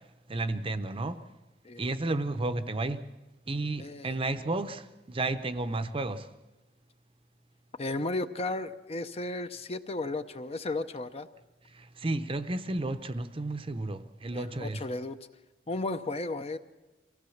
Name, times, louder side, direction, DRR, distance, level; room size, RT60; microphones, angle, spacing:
voice 1, 0.3-1.2 1.8-3.1 3.5-6.3 11.7-14.8, right 2 dB, 30° right, 0.7 m, -32 dB
voice 2, 3.8-4.2 7.8-11.3 14.3-15.2 15.7-16.6, left 2 dB, 35° left, 0.7 m, -34 dB
23.5 x 16.5 x 7.2 m
head